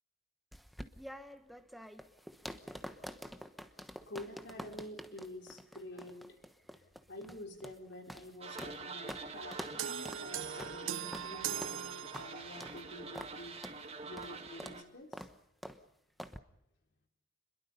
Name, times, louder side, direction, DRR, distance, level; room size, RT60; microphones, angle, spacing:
sound 1, 0.5-8.8 9.1-9.2 9.5-9.8 10.0-10.2 10.6-10.8 11.1-11.3 11.6-11.8 12.1-12.3 12.6-12.8 13.1-13.3 13.6-13.8 14.2-14.3 14.6-14.8 15.1-15.3 15.6-15.8 16.2-16.4, equal, ahead, 1.1 m, -46 dB
voice 1, 4.1-6.4 7.1-13.6 14.0-15.3, left 1 dB, 55° left, 3 dB, 4.1 m, -48 dB
sound 2, 8.4-14.8, right 4 dB, 30° right, 2.0 m, -46 dB
sound 3, 9.8-12.7, right 9 dB, 75° right, 0.8 m, -40 dB
28.5 x 22.0 x 5.5 m, 0.80 s
head